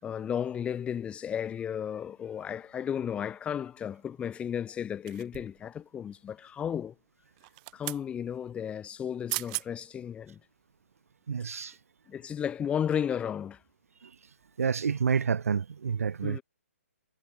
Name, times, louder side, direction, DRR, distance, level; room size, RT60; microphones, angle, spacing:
voice 1, 0.0-6.9 7.7-10.4 12.1-13.6 16.2-16.4, left 8 dB, 15° left, 5.1 m, -34 dB
sound 1, 5.1-5.6 7.4-8.0 9.0-9.1 9.3-9.7 10.2-10.4, right 28 dB, 30° right, 0.8 m, -36 dB
voice 2, 11.3-11.7 14.6-16.4, right 6 dB, 75° right, 0.6 m, -28 dB
hypercardioid pair, 135°, 8 cm